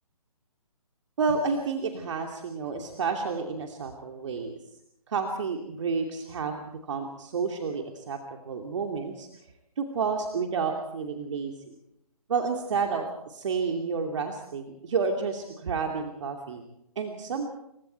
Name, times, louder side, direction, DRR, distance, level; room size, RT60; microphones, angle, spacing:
voice 1, 1.2-4.5 5.1-6.6 6.9-8.2 8.4-9.3 9.8-11.5 12.3-16.6 17.0-17.5, right 5 dB, 50° right, 3 dB, 2.7 m, -30 dB
28.5 x 24.0 x 4.6 m, 0.81 s
figure-of-eight pair, 140°, 19 cm